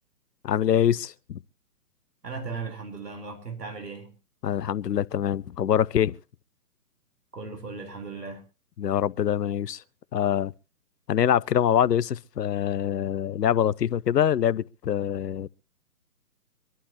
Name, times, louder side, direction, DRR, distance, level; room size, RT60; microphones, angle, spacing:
voice 1, 0.4-1.4 4.4-6.2 8.8-9.8 10.1-10.5 11.1-15.5, left 9 dB, 85° left, 0.6 m, -24 dB
voice 2, 2.2-4.1 7.3-8.4, right 4 dB, 80° right, 3.9 m, -37 dB
25.0 x 11.0 x 2.8 m
figure-of-eight pair, 135°, 47 cm